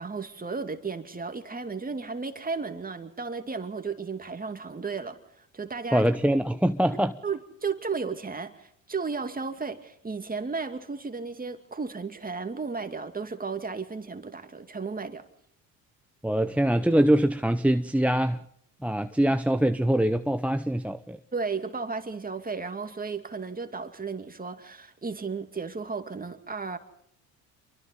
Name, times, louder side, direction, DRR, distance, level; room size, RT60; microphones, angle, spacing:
voice 1, 0.0-6.1 6.9-15.3 21.3-26.8, right 4 dB, 20° right, 2.4 m, -34 dB
voice 2, 5.9-7.1 16.2-18.4 18.8-21.2, right 1 dB, 5° right, 0.7 m, -23 dB
28.0 x 24.0 x 4.1 m
hypercardioid pair, 65°, 43 cm